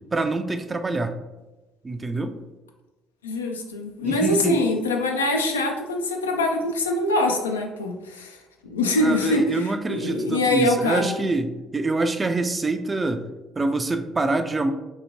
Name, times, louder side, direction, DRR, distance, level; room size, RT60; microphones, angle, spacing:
voice 1, 0.1-1.1 1.8-2.3 4.0-4.6 9.0-13.2 13.6-14.7, right 2 dB, 25° right, 8 dB, 0.3 m, -25 dB
voice 2, 3.2-8.4 8.6-11.3, left 2 dB, 80° left, 3 dB, 0.3 m, -24 dB
2.8 x 2.8 x 2.7 m, 1.1 s
figure-of-eight pair, 50°, 0 cm